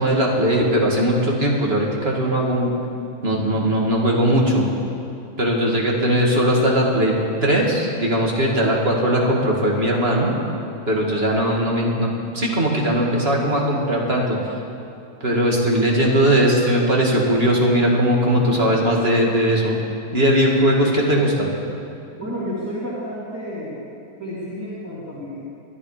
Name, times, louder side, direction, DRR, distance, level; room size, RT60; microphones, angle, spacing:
voice 1, 0.0-2.7 3.2-4.6 5.4-7.1 7.4-10.4 10.9-12.1 12.3-14.4 15.2-19.7 20.1-21.5, equal, 40° right, -2 dB, 2.5 m, -19 dB
voice 2, 22.2-23.8 24.2-25.4, equal, 10° right, -10 dB, 3.1 m, -30 dB
25.0 x 11.5 x 5.1 m, 2.7 s
omnidirectional pair, 1.7 m